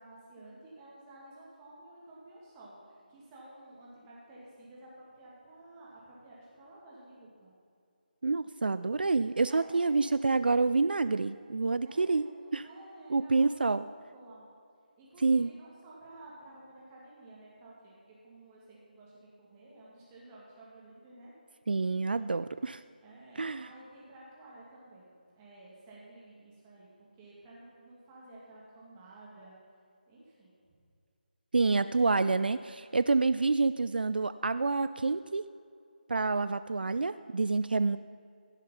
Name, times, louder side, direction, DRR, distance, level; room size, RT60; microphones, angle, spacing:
voice 1, 0.0-7.5 9.5-10.0 11.8-14.4 15.0-21.3 23.0-29.5 30.1-30.6, right 1 dB, 15° right, -6 dB, 2.2 m, -53 dB
voice 2, 8.2-12.2 12.5-12.6 13.1-13.8 15.2-15.5 21.7-22.8 23.4-23.7 31.5-35.4 36.1-38.0, right 3 dB, 70° right, 13 dB, 0.3 m, -28 dB
16.0 x 6.6 x 5.7 m, 2.3 s
figure-of-eight pair, 155°, 5 cm